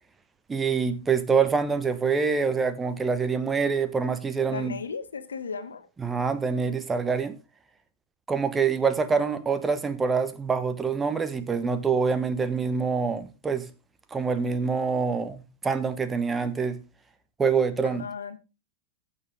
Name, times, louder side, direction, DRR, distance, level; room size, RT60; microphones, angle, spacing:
voice 1, 0.5-4.7 6.0-7.4 8.3-13.7 14.1-16.8 17.4-18.0, right 5 dB, 15° right, 1.2 m, -25 dB
voice 2, 4.4-5.9 17.8-18.4, left 5 dB, 70° left, 1.2 m, -36 dB
15.0 x 6.9 x 3.6 m
figure-of-eight pair, 90°, 0 cm